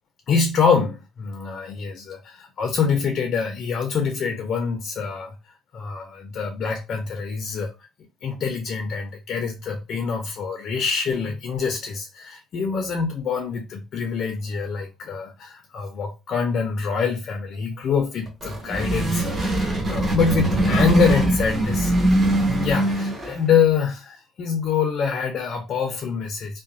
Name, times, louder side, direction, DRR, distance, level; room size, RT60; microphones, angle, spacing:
voice 1, 0.3-5.4 5.7-7.7 8.2-22.2 22.5-26.6, left 5 dB, 50° left, 0.5 m, -25 dB
sound 1, 18.3-23.6, right 1 dB, 30° right, 1.2 m, -22 dB
2.9 x 2.1 x 2.6 m
cardioid pair, 130°, 0 cm